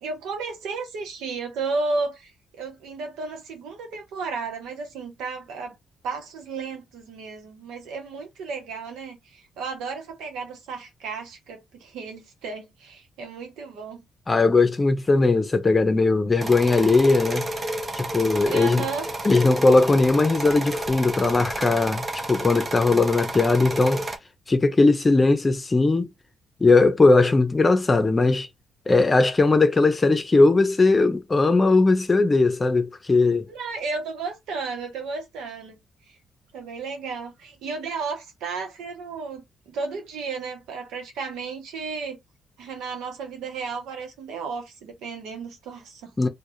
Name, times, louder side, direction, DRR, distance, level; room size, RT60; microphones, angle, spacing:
voice 1, 0.0-5.8 6.0-14.0 18.5-19.1 33.5-35.8 36.5-42.2 42.6-46.1, right 4 dB, 85° right, 0.9 m, -33 dB
voice 2, 14.3-17.5 17.9-18.8 19.2-24.0 24.5-26.1 26.6-28.5 28.9-33.5 46.2-46.3, left 3 dB, 30° left, 0.6 m, -19 dB
sound 1, 16.4-24.2, right 2 dB, 35° right, 0.7 m, -31 dB
2.4 x 2.3 x 2.7 m
cardioid pair, 70°, 0 cm